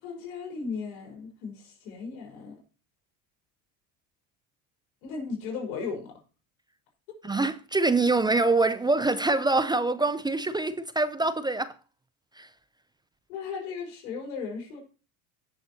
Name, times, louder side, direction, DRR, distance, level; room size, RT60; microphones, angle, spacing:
voice 1, 0.0-2.6 5.0-6.2 13.3-14.8, left 5 dB, 80° left, 4.5 m, -36 dB
voice 2, 7.2-11.8 12.4-12.5, right 3 dB, 10° right, 0.4 m, -25 dB
17.0 x 6.5 x 2.8 m
supercardioid pair, 100°, 42 cm